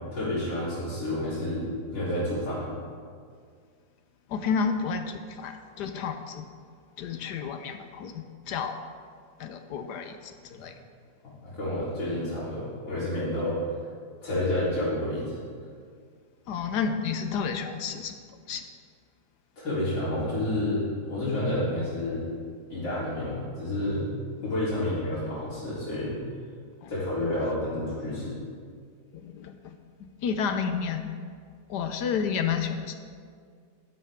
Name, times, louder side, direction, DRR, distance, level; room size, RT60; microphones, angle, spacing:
voice 1, 0.1-2.7 10.5-10.6 11.4-13.6 14.2-15.4 19.6-22.2 22.7-24.1 24.4-26.1 26.9-28.4, left 1 dB, 90° left, -12 dB, 4.4 m, -29 dB
voice 2, 4.3-6.4 7.0-8.8 9.4-10.7 16.5-18.2 18.5-18.6 26.8-26.9 29.1-29.7 30.2-31.1 31.7-32.9, left 6 dB, 70° left, 8 dB, 1.2 m, -31 dB
11.5 x 11.0 x 3.6 m, 2.1 s
omnidirectional pair, 2.0 m